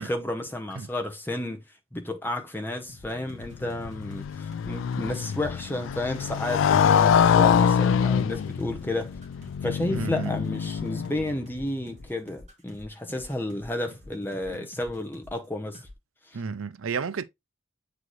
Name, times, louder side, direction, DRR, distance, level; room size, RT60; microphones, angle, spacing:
voice 1, 0.0-1.6 1.9-9.1 9.6-15.9 16.3-16.4, left 1 dB, 10° left, 0.9 m, -32 dB
sound 1, 2.9-15.5 15.7-15.9, left 1 dB, 35° right, 2.1 m, -48 dB
Motorcycle, 3.3-11.5, left 7 dB, 70° left, 0.3 m, -24 dB
voice 2, 9.9-10.3 16.3-17.2, right 5 dB, 85° right, 0.5 m, -31 dB
7.9 x 4.1 x 3.1 m
head